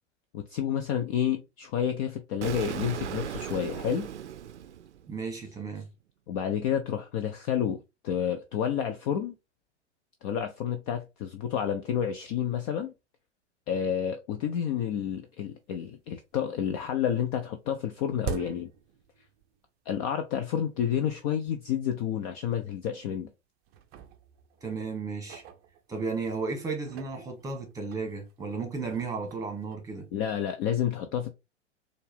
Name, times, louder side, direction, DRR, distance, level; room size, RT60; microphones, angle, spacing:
voice 1, 0.3-4.1 6.3-9.3 10.2-12.9 13.7-18.7 19.9-23.3 30.1-31.3, left 9 dB, 30° left, 0.4 m, -30 dB
Explosion, 2.4-5.3, right 10 dB, 75° right, 0.5 m, -37 dB
voice 2, 5.1-5.9 24.6-25.4 25.9-30.1, right 4 dB, 10° right, 1.4 m, -34 dB
sound 1, 15.4-15.5 15.9-16.5 16.8-19.7 20.0-20.1 20.9-21.0 21.5-21.6 21.9-22.1 22.8-23.3 23.6-26.3 26.7-30.6, right 9 dB, 30° right, 0.5 m, -45 dB
4.3 x 2.5 x 3.3 m
figure-of-eight pair, 100°, 35 cm